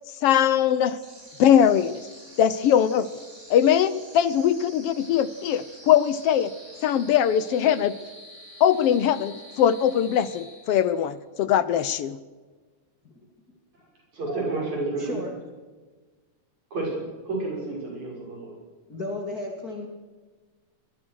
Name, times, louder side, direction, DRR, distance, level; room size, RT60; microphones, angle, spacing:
voice 1, 0.2-1.0 1.4-1.9 2.4-3.1 3.5-6.5 6.8-7.9 8.6-12.2, left 9 dB, 70° left, 15 dB, 1.5 m, -21 dB
sound 1, 0.8-11.1, equal, 20° right, 5.4 m, -47 dB
voice 2, 14.1-15.2 16.7-16.9 17.2-18.6, right 3 dB, 70° right, -2 dB, 7.8 m, -30 dB
voice 3, 15.0-15.3 18.9-19.9, left 2 dB, 30° left, 1 dB, 3.0 m, -34 dB
23.5 x 21.0 x 6.4 m, 1.4 s
omnidirectional pair, 3.4 m